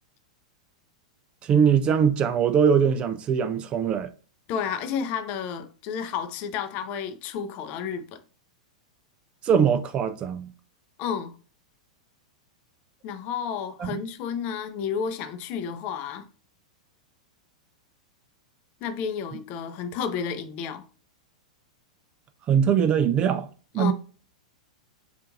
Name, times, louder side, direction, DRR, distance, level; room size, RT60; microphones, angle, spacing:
voice 1, 1.4-4.1 9.4-10.5 13.8-14.0 22.5-23.5 23.7-23.9, right 7 dB, 30° right, 0.4 m, -22 dB
voice 2, 4.5-8.2 11.0-11.3 13.0-16.3 18.8-20.8 23.8-23.9, left 7 dB, 40° left, 0.5 m, -31 dB
4.4 x 2.5 x 2.6 m
figure-of-eight pair, 100°, 4 cm